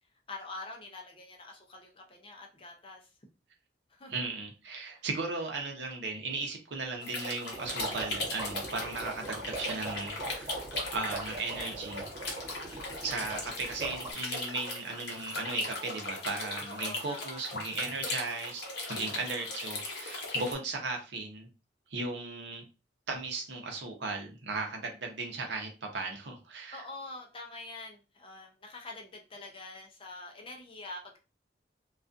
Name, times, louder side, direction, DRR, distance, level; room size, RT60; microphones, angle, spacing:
voice 1, 0.3-3.1 3.9-4.1 12.3-12.7 16.7-17.5 19.0-19.5 20.0-20.4 26.7-31.2, left 2 dB, 30° left, 2 dB, 0.5 m, -46 dB
voice 2, 4.1-10.6 10.9-12.0 13.0-21.5 21.9-22.6 23.1-26.9, right 3 dB, 70° right, 2 dB, 0.7 m, -36 dB
sound 1, 7.0-20.5, left 2 dB, 65° left, 0.8 m, -38 dB
sound 2, 7.5-14.1, right 2 dB, 35° right, 1.0 m, -41 dB
2.3 x 2.3 x 2.5 m, 0.32 s
head